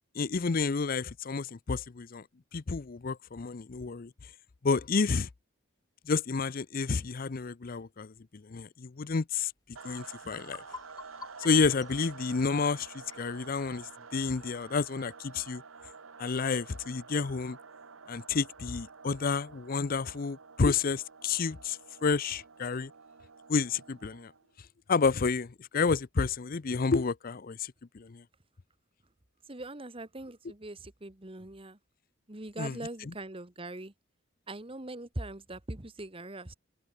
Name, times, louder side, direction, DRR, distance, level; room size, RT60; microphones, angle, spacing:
voice 1, 0.1-2.2 2.5-4.1 4.6-5.3 6.1-9.5 9.8-10.6 11.4-15.6 16.2-17.6 18.1-22.9 23.5-24.3 24.9-28.2 32.6-32.8 33.1-33.2, left 4 dB, 45° left, 0.5 m, -30 dB
sound 1, 9.7-9.8 10.2-13.3, left 4 dB, 20° left, 7.7 m, -48 dB
sound 2, 9.8-24.5, right 5 dB, 85° right, 1.3 m, -50 dB
voice 2, 29.5-31.8 32.3-33.9 34.5-36.5, right 2 dB, 25° right, 1.5 m, -41 dB
open air
head